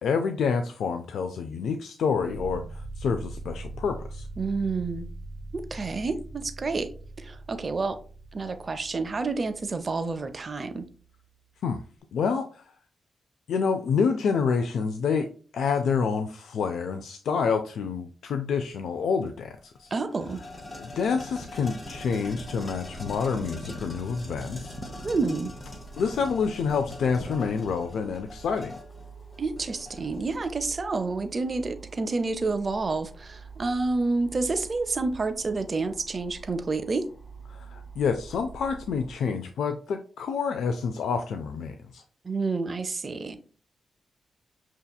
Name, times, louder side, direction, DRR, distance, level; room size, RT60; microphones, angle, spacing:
voice 1, 0.0-4.3 11.6-11.8 12.1-12.7 13.5-15.3 15.5-19.9 20.8-24.7 26.0-28.8 37.5-42.0, left 5 dB, 80° left, 6 dB, 0.3 m, -28 dB
sound 1, 2.1-11.2, right 2 dB, 75° right, 0.7 m, -42 dB
voice 2, 4.4-5.1 5.5-6.9 7.2-8.0 8.3-10.9 19.9-20.4 25.0-25.5 29.4-37.1 42.2-43.4, right 3 dB, 35° right, 8 dB, 0.5 m, -29 dB
sound 2, 19.2-19.3 19.6-30.3, left 2 dB, 30° left, 0.8 m, -41 dB
sound 3, 21.8-39.1, right 4 dB, 5° left, 1.2 m, -47 dB
5.9 x 2.7 x 2.2 m, 0.41 s
cardioid pair, 85°, 0 cm